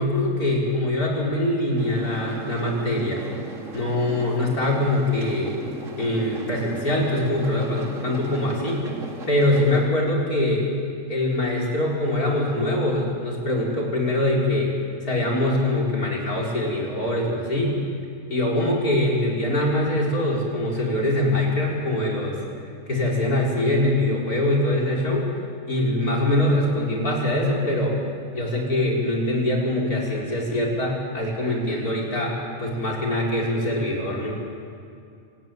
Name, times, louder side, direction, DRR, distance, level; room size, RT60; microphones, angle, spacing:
voice 1, 0.0-3.2 3.7-5.6 6.0-8.8 9.3-10.7 11.1-14.7 15.0-17.8 18.3-22.4 22.9-25.3 25.7-28.0 28.3-34.4, left 1 dB, 85° left, -2 dB, 5.4 m, -23 dB
sound 1, 1.8-9.9, right 4 dB, 60° right, 2.5 m, -37 dB
27.5 x 16.0 x 9.4 m, 2.4 s
omnidirectional pair, 1.5 m